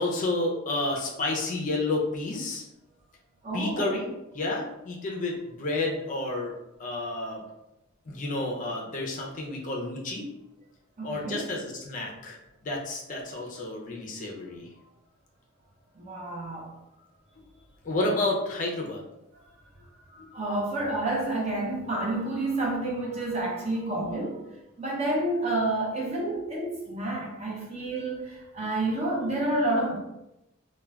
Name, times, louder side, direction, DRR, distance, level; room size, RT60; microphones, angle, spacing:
voice 1, 0.0-2.6 3.5-4.1 4.3-6.5 6.8-7.4 8.1-10.3 11.0-12.4 12.6-14.7 17.8-19.0, left 2 dB, 40° left, -1 dB, 0.4 m, -30 dB
voice 2, 3.4-3.9 11.0-11.4 16.0-16.8 20.1-24.5 24.8-30.0, right 2 dB, 30° right, -3 dB, 0.6 m, -29 dB
2.2 x 2.1 x 3.3 m, 0.90 s
head